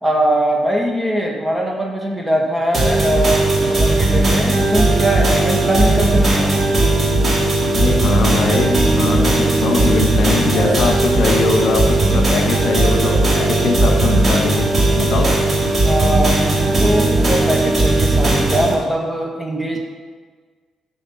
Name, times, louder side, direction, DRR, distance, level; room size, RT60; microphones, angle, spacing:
voice 1, 0.0-6.5 15.0-15.4 15.8-19.8, right 1 dB, 10° right, 0 dB, 1.7 m, -21 dB
sound 1, 2.7-18.7, right 2 dB, 40° right, 2.1 m, -16 dB
voice 2, 7.7-14.7 14.9-15.3, left 3 dB, 65° left, 2 dB, 1.5 m, -20 dB
7.8 x 6.1 x 5.7 m, 1.5 s
cardioid pair, 90°, 0 cm